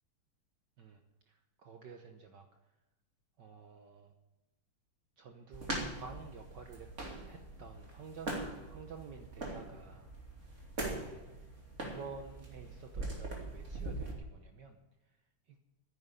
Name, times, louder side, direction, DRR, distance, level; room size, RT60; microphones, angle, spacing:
voice 1, 1.3-2.5 3.4-4.1 5.2-6.9 7.2-10.1 10.8-11.2 11.8-14.8 15.5-15.6, right 5 dB, 60° right, 4 dB, 1.5 m, -50 dB
sound 1, 5.5-14.1, right 2 dB, 35° right, 2.9 m, -42 dB
10.5 x 9.6 x 9.8 m, 1.0 s
omnidirectional pair, 2.4 m